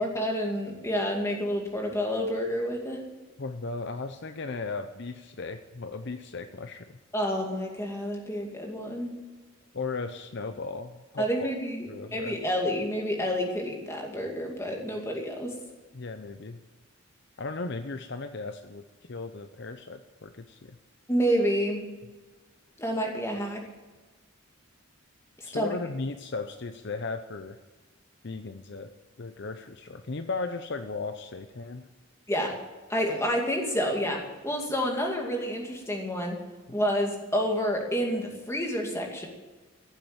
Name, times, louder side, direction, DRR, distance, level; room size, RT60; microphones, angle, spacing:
voice 1, 0.0-3.0 7.1-9.2 11.2-15.5 21.1-21.8 22.8-23.6 25.4-25.7 32.3-32.5 32.9-36.4 36.7-39.3, equal, 15° left, 0 dB, 2.4 m, -29 dB
voice 2, 3.4-7.0 9.7-11.5 11.9-12.4 15.9-16.6 17.4-18.8 19.1-20.8 25.5-27.6 28.2-28.9 29.2-31.8, left 3 dB, 50° left, 8 dB, 0.7 m, -36 dB
15.5 x 7.5 x 8.9 m, 1.3 s
head